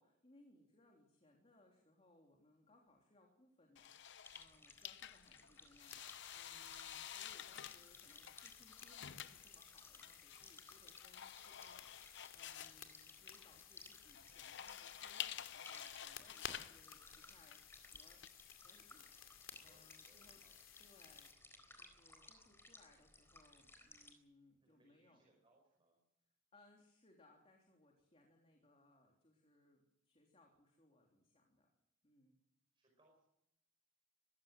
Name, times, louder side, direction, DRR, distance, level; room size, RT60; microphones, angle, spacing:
voice 1, 0.0-18.2 18.5-20.4 20.8-21.3 21.8-25.2 26.5-31.7 32.0-32.4, left 2 dB, 30° left, 1 dB, 3.4 m, -69 dB
sound 1, 3.8-18.3, left 10 dB, 60° left, 0.8 m, -51 dB
sound 2, 4.2-24.1, left 2 dB, 10° left, 4.0 m, -61 dB
voice 2, 5.2-5.6 19.6-20.7 24.6-26.0 32.7-33.2, right 1 dB, 25° right, 0 dB, 5.1 m, -74 dB
sound 3, 5.8-21.3, left 8 dB, 85° left, 2.5 m, -57 dB
23.0 x 16.0 x 7.9 m, 0.82 s
head